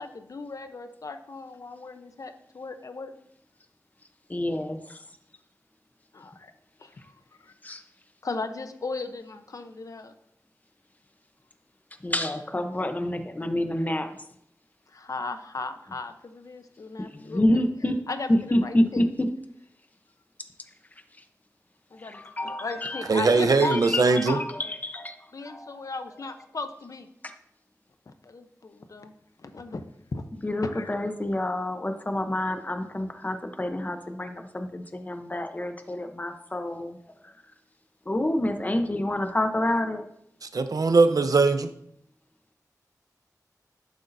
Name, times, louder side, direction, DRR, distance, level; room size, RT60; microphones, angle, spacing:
voice 1, 0.0-3.1 6.1-6.5 6.8-7.1 7.4-7.5 8.2-10.1 14.9-17.6 18.1-19.0 21.9-24.5 25.3-27.1 28.1-30.2 30.7-30.9, left 3 dB, 60° left, 8 dB, 0.8 m, -37 dB
voice 2, 4.3-5.0 7.6-7.8 12.0-14.1 17.0-18.0 18.3-19.3 22.0-23.1 23.6-25.2 25.4-25.8 30.4-37.0 37.2-37.3 38.1-40.0, left 1 dB, 25° left, 6 dB, 0.9 m, -28 dB
voice 3, 23.1-24.4 40.4-41.7, right 4 dB, 65° right, 8 dB, 0.8 m, -21 dB
11.5 x 8.1 x 2.7 m, 0.72 s
wide cardioid pair, 80°, 7 cm